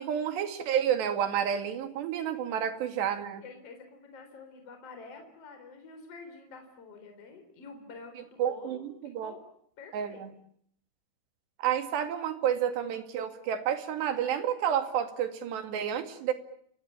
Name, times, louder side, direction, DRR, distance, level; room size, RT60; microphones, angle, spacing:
voice 1, 0.0-3.4 8.4-9.3 9.9-10.3 11.6-16.3, right 9 dB, 70° right, 8 dB, 4.3 m, -30 dB
voice 2, 3.4-9.4 9.8-10.2, left 4 dB, 35° left, 5 dB, 4.8 m, -48 dB
28.5 x 21.5 x 8.9 m, 0.68 s
omnidirectional pair, 5.2 m